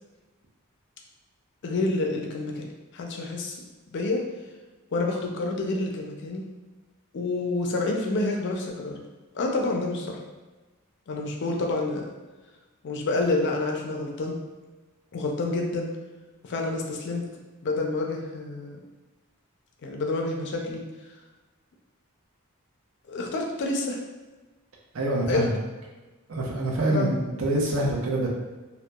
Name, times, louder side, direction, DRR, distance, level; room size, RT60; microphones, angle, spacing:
voice 1, 1.6-2.7 2.9-3.6 3.9-4.2 4.9-6.5 7.1-9.0 9.3-10.2 11.1-12.1 12.8-14.4 15.1-15.9 16.4-17.2 17.6-18.8 19.8-20.8 23.1-24.0 25.3-25.5 26.9-27.2, left 2 dB, 55° left, 1 dB, 0.4 m, -28 dB
voice 2, 24.9-25.5 26.3-27.1 27.4-28.3, right 1 dB, 65° right, -1 dB, 0.5 m, -25 dB
2.8 x 2.1 x 2.2 m, 1.2 s
head